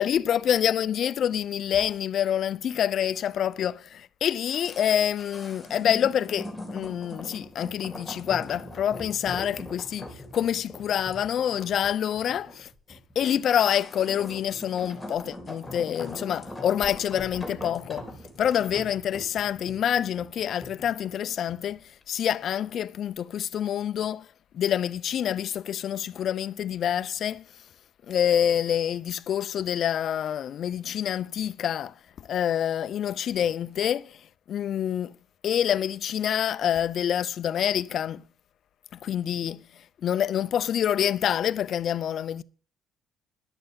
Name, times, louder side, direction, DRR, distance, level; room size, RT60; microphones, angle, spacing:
voice 1, 0.0-18.1 18.4-24.3 24.5-27.4 28.1-34.2 34.5-35.2 35.4-38.2 39.0-39.6 40.0-42.4, left 9 dB, 55° left, 0.5 m, -27 dB
sound 1, 4.5-21.7 22.0-22.1, left 1 dB, ahead, 3.5 m, -41 dB
11.5 x 6.8 x 8.0 m
cardioid pair, 120°, 0 cm